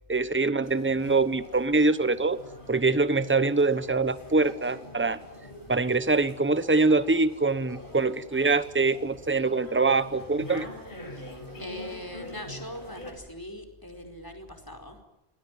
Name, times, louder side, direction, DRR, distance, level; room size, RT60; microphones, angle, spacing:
voice 1, 0.1-2.4 2.7-5.2 5.7-10.7, right 3 dB, 10° right, 14 dB, 1.0 m, -24 dB
sound 1, 0.6-13.1, left 1 dB, 50° left, 8.1 m, -45 dB
voice 2, 11.6-15.0, left 1 dB, 20° left, 7 dB, 4.8 m, -41 dB
28.0 x 20.5 x 9.4 m, 0.86 s
omnidirectional pair, 1.1 m